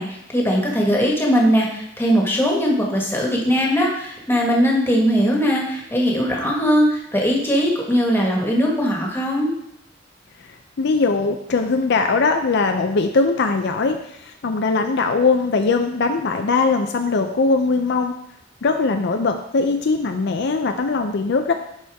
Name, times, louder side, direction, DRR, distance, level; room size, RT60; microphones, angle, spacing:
voice 1, 0.0-9.5, equal, 10° left, -2 dB, 1.5 m, -20 dB
voice 2, 10.8-18.1 18.6-21.5, left 4 dB, 60° left, 5 dB, 0.5 m, -20 dB
11.0 x 4.4 x 3.5 m, 0.78 s
head